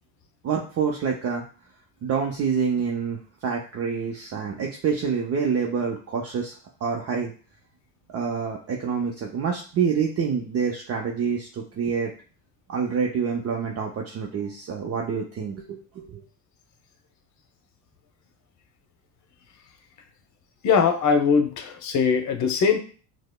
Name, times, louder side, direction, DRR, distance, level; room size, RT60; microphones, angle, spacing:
voice 1, 0.4-1.4 2.0-6.5 6.8-7.3 8.1-12.1 12.7-16.2, right 6 dB, 40° right, 0 dB, 0.6 m, -27 dB
voice 2, 20.6-22.8, left 6 dB, 50° left, 6 dB, 0.8 m, -21 dB
4.8 x 2.0 x 2.2 m, 0.39 s
supercardioid pair, 85°, 37 cm